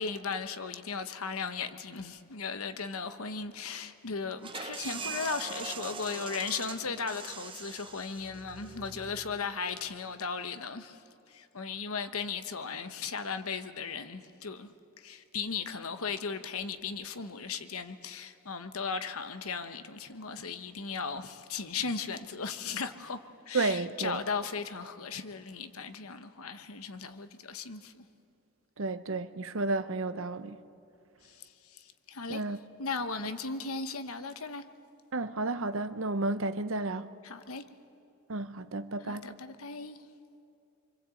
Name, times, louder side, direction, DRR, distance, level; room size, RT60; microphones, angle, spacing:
voice 1, 0.0-11.0 11.3-14.7 15.0-23.2 23.5-28.0 31.2-32.4 32.8-34.6 37.2-37.6 39.0-40.0, left 5 dB, 80° left, 1.2 m, -37 dB
sound 1, 4.4-9.8, right 5 dB, 25° right, 1.0 m, -42 dB
voice 2, 23.5-24.2 28.8-30.6 32.3-32.6 35.1-37.1 38.3-39.2, right 3 dB, 65° right, 0.8 m, -32 dB
25.0 x 25.0 x 8.4 m
head